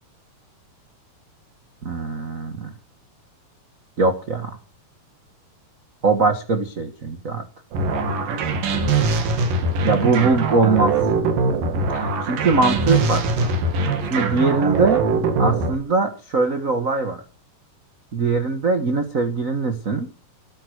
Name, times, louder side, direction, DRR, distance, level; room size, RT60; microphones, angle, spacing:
voice 1, 1.8-2.7 4.0-4.6 6.0-7.4 9.8-10.9 11.9-13.5 13.8-15.0 15.4-17.2 18.1-20.1, right 3 dB, 45° right, 7 dB, 1.1 m, -21 dB
sound 1, 7.7-15.8, right 3 dB, 80° right, 4.0 m, -22 dB
18.0 x 9.9 x 6.5 m, 0.37 s
omnidirectional pair, 3.9 m